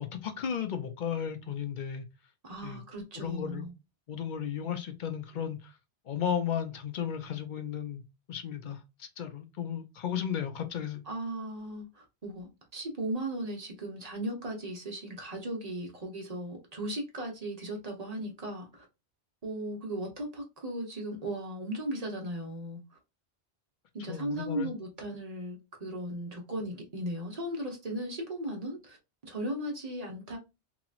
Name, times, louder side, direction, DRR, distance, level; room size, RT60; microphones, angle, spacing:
voice 1, 0.0-2.1 2.6-2.8 3.2-3.7 4.1-5.7 6.1-11.0 24.1-24.7, left 8 dB, 55° left, 0.6 m, -34 dB
voice 2, 2.4-3.7 11.1-18.8 19.4-22.8 23.9-29.0 29.2-30.4, right 1 dB, 40° right, 0.9 m, -37 dB
2.9 x 2.9 x 2.4 m
omnidirectional pair, 1.1 m